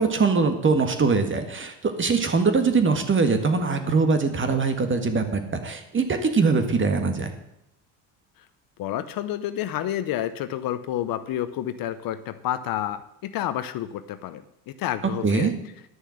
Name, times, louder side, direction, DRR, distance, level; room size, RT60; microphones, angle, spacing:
voice 1, 0.0-7.3 15.2-15.5, right 4 dB, 30° right, 7 dB, 1.7 m, -22 dB
voice 2, 8.8-15.5, left 12 dB, 55° left, 12 dB, 0.8 m, -29 dB
11.0 x 6.6 x 6.4 m, 0.84 s
supercardioid pair, 85°, 42 cm